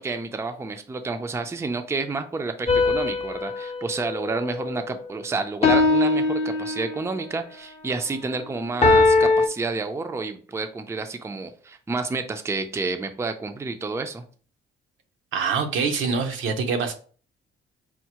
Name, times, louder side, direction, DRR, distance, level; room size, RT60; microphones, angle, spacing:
voice 1, 0.0-14.2, right 3 dB, 15° right, 7 dB, 0.4 m, -30 dB
sound 1, 2.7-5.1 5.6-7.2 8.8-9.5, left 3 dB, 30° left, 0.6 m, -21 dB
voice 2, 15.3-16.9, right 5 dB, 80° right, 5 dB, 0.7 m, -25 dB
4.5 x 2.0 x 2.9 m, 0.41 s
cardioid pair, 90°, 20 cm